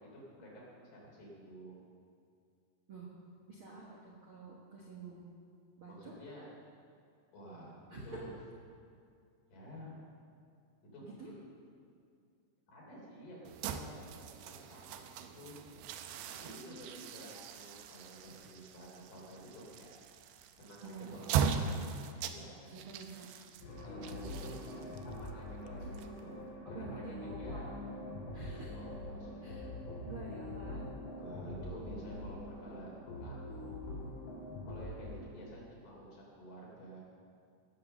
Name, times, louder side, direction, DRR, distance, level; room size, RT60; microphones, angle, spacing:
voice 1, 0.0-1.8 6.0-6.5 7.3-7.7 8.0-8.3 9.5-10.0 10.9-11.5 12.7-15.6 16.3-19.9 20.6-21.6 22.2-22.7 23.8-26.4 26.7-27.7 28.7-29.6 31.0-32.9 33.2-33.7 34.6-37.1, equal, 55° left, -4 dB, 4.6 m, -51 dB
voice 2, 3.5-5.2 5.8-6.1 7.9-8.2 11.0-11.3 16.5-17.3 20.8-21.8 22.7-23.3 23.8-24.4 25.8-25.9 26.6-27.9 28.3-28.7 29.4-29.7 30.0-30.9 31.9-32.3, right 3 dB, 55° right, -4 dB, 1.4 m, -48 dB
sound 1, 13.4-26.5, right 7 dB, 80° right, 2.6 m, -40 dB
sound 2, 23.6-35.2, left 1 dB, 75° left, 6.3 m, -44 dB
17.5 x 7.8 x 6.7 m, 2.3 s
omnidirectional pair, 4.7 m